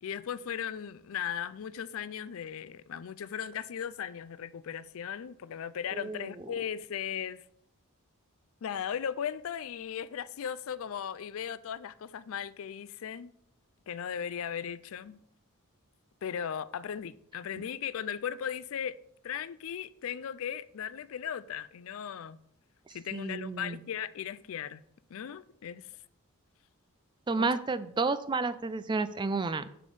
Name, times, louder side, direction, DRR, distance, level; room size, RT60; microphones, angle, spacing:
voice 1, 0.0-7.4 8.6-13.3 13.9-15.2 16.2-19.0 19.2-22.4 22.9-24.8 25.1-25.9 27.4-27.5, left 8 dB, 65° left, 0.4 m, -37 dB
voice 2, 5.9-6.5 22.9-23.8 27.3-29.7, right 3 dB, 20° right, 0.3 m, -31 dB
6.8 x 5.1 x 5.4 m
head